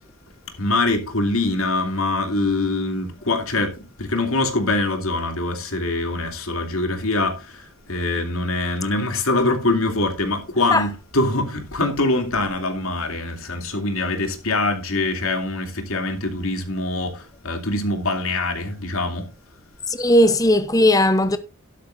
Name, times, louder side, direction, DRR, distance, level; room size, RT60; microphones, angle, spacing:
voice 1, 0.6-19.3, left 2 dB, 90° left, 2.8 m, -24 dB
voice 2, 19.9-21.4, left 1 dB, 15° left, 0.7 m, -17 dB
12.5 x 11.5 x 2.6 m
head